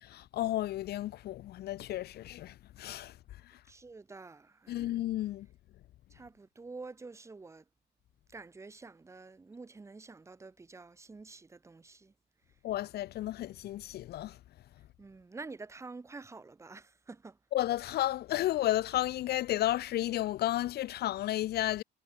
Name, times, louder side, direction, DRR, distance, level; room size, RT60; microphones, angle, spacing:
voice 1, 0.0-3.1 4.7-5.5 12.6-14.4 17.5-21.8, left 14 dB, 55° left, 0.9 m, -32 dB
voice 2, 3.7-5.0 6.1-7.6 8.3-12.1 15.0-17.4, right 3 dB, 15° right, 4.9 m, -48 dB
cardioid pair, 175°, 19 cm